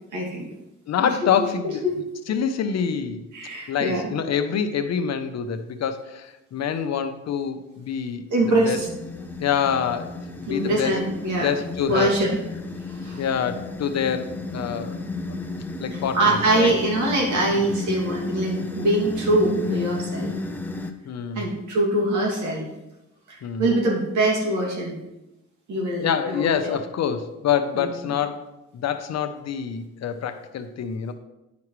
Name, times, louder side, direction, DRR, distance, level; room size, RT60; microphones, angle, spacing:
voice 1, 0.1-0.5 1.8-1.9 3.3-4.1 8.3-8.9 10.5-11.5 11.9-12.4 12.9-13.2 15.9-20.3 21.3-22.7 23.3-25.0 25.7-26.8 27.7-27.9, right 1 dB, 75° right, -2 dB, 2.4 m, -23 dB
voice 2, 0.9-3.3 3.7-8.2 8.6-8.8 9.4-11.0 11.4-12.1 13.2-15.0 15.3-15.4 15.8-16.7 17.5-17.7 21.0-21.4 23.4-23.7 26.0-31.1, left 7 dB, 60° left, 9 dB, 0.8 m, -26 dB
sound 1, 8.7-20.9, left 3 dB, 5° left, 0.7 m, -33 dB
9.4 x 5.9 x 3.2 m, 0.95 s
cardioid pair, 90°, 30 cm